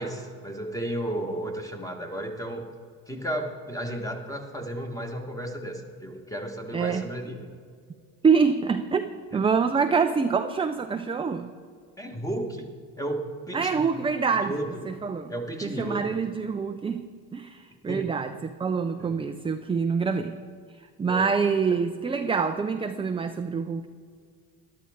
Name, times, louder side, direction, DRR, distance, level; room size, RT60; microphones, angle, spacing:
voice 1, 0.0-2.7 3.1-7.5 9.3-9.4 12.0-12.7 13.0-13.9 14.3-14.8 15.3-16.1 17.9-18.2 19.0-19.2 21.1-21.3, right 1 dB, 10° left, 3 dB, 1.6 m, -33 dB
voice 2, 6.7-7.1 8.2-9.0 9.3-11.5 13.5-14.5 14.9-15.3 15.6-17.0 17.3-20.3 21.0-23.9, right 5 dB, 15° right, 7 dB, 0.4 m, -25 dB
13.5 x 11.5 x 3.6 m, 2.1 s
cardioid pair, 90°, 41 cm